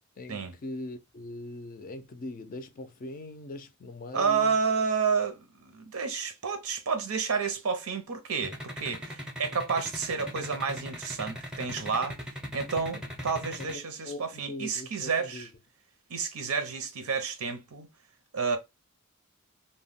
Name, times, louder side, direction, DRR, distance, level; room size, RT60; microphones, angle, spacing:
voice 1, 0.2-4.6 12.9-13.1 13.6-15.5, left 1 dB, 40° left, 0.4 m, -41 dB
voice 2, 4.1-12.2 12.5-15.5 16.1-17.9 18.3-18.6, right 5 dB, 80° right, 0.6 m, -30 dB
sound 1, 8.4-13.7, equal, 5° right, 0.6 m, -38 dB
2.2 x 2.1 x 3.4 m
head